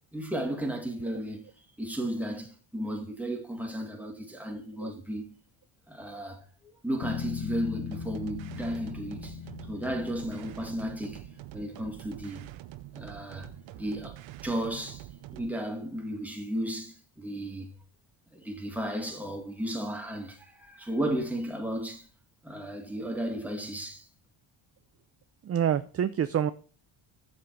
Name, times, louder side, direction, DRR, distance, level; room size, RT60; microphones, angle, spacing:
voice 1, 0.1-1.5 1.8-5.3 5.9-11.3 11.5-12.4 12.9-17.7 18.3-22.1 22.4-24.1, right 1 dB, 5° right, 2.3 m, -34 dB
Bass guitar, 7.0-11.4, left 9 dB, 50° left, 0.9 m, -39 dB
sound 1, 7.9-15.6, right 14 dB, 65° right, 0.8 m, -45 dB
voice 2, 25.4-26.5, right 9 dB, 30° right, 0.5 m, -27 dB
7.4 x 7.4 x 4.6 m
cardioid pair, 110°, 49 cm